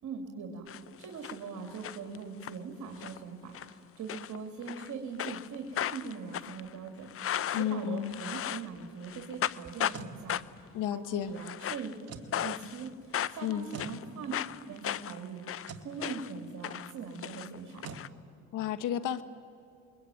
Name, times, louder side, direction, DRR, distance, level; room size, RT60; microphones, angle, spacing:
voice 1, 0.0-0.7 1.0-10.4 10.9-11.9 12.3-12.9 13.3-14.3 14.7-15.4 15.7-18.0, right 5 dB, 75° right, 2 dB, 2.9 m, -41 dB
sound 1, 0.7-1.4 1.7-2.5 3.0-3.2 3.5-3.7 4.1-4.9 5.2-8.8 9.0-10.0 10.3-10.7 11.3-11.9 12.3-12.9 13.1-16.4 16.6-18.1, left 10 dB, 50° left, 0.6 m, -36 dB
voice 2, 7.5-8.2 10.7-11.3 13.4-13.7 18.5-19.2, left 10 dB, 85° left, 13 dB, 1.2 m, -32 dB
sound 2, 9.6-10.2 12.0-12.4 13.7-14.0 15.6-15.9 17.8-18.1, right 5 dB, 55° right, 2.1 m, -44 dB
27.0 x 22.5 x 9.3 m, 2.5 s
cardioid pair, 90°, 30 cm